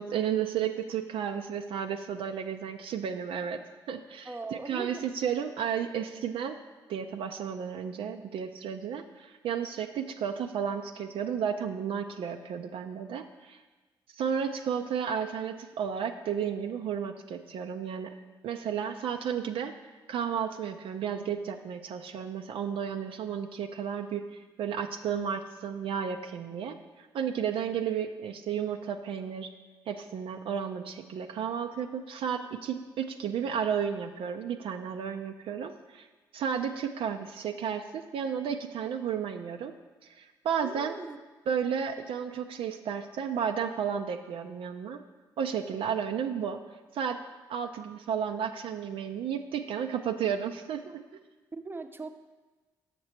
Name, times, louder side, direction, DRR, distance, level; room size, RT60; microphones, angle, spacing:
voice 1, 0.0-3.6 3.9-6.6 6.9-13.6 14.1-18.1 18.4-29.5 29.9-36.1 36.3-39.7 40.0-41.0 41.5-45.0 45.4-46.6 46.9-47.2 47.5-51.0, right 7 dB, 65° right, 6 dB, 0.4 m, -33 dB
voice 2, 4.2-5.0 40.6-41.2 51.5-52.1, right 3 dB, 20° right, 7 dB, 0.7 m, -39 dB
6.7 x 6.6 x 4.2 m, 1.3 s
hypercardioid pair, 45°, 10 cm